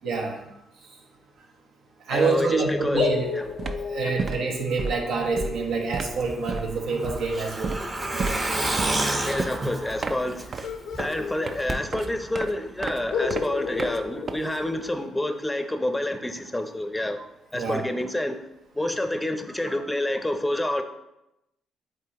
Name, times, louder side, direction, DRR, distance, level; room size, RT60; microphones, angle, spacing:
voice 1, 0.0-0.4 2.1-3.3 3.9-7.8 8.1-8.4 17.5-17.8 19.6-19.8, right 4 dB, 75° right, 2 dB, 1.1 m, -27 dB
voice 2, 2.1-3.0 3.3-3.5 9.2-10.4 11.0-17.2 17.5-18.4 18.8-20.8, left 1 dB, 10° left, 7 dB, 0.6 m, -28 dB
sound 1, 2.9-8.4 10.6-12.1 12.3-12.4 13.1-15.3, left 5 dB, 80° left, 0.6 m, -34 dB
sound 2, 3.1-3.2 3.5-14.9, right 4 dB, 45° right, 0.5 m, -34 dB
Truck, 6.3-11.0 11.3-11.4 11.7-11.8, right 1 dB, 25° right, 0.8 m, -29 dB
8.4 x 3.8 x 2.9 m, 0.89 s
cardioid pair, 90°, 0 cm